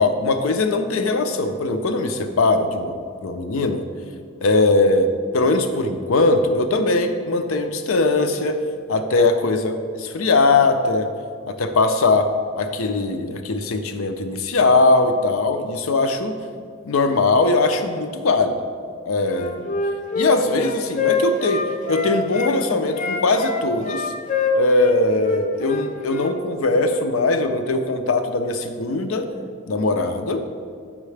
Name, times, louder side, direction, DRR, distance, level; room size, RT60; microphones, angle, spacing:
voice 1, 0.0-3.8 4.4-8.6 8.9-11.1 11.5-12.3 12.6-16.3 16.8-18.6 19.0-19.7 20.1-21.6 21.9-24.1 24.5-29.3 29.7-30.4, left 3 dB, 90° left, 7 dB, 0.5 m, -20 dB
Wind instrument woodwind instrument, 19.3-22.5 22.9-26.3, left 4 dB, 40° left, 0.5 m, -24 dB
7.3 x 5.6 x 3.3 m, 2.1 s
head